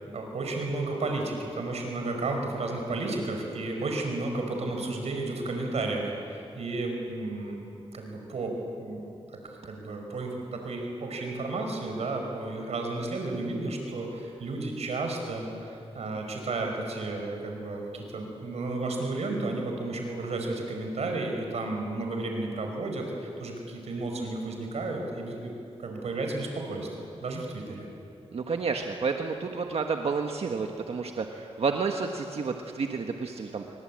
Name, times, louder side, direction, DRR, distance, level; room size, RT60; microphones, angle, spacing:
voice 1, 0.0-8.5 8.8-9.1 9.3-25.5 25.8-27.9, right 2 dB, 85° right, 3 dB, 5.2 m, -33 dB
voice 2, 28.3-33.6, right 4 dB, 70° right, 3 dB, 1.5 m, -30 dB
26.5 x 24.0 x 8.8 m, 2.7 s
wide cardioid pair, 110°, 11 cm